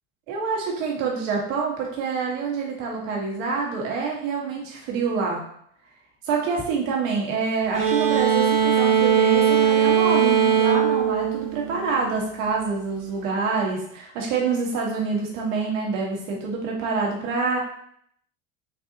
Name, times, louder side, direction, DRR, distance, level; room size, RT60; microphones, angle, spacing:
voice 1, 0.3-5.4 6.2-17.6, right 4 dB, 80° right, -1 dB, 1.2 m, -26 dB
sound 1, 7.7-12.2, right 8 dB, 60° right, 1.2 m, -20 dB
4.0 x 2.6 x 2.7 m, 0.66 s
supercardioid pair, 95°, 38 cm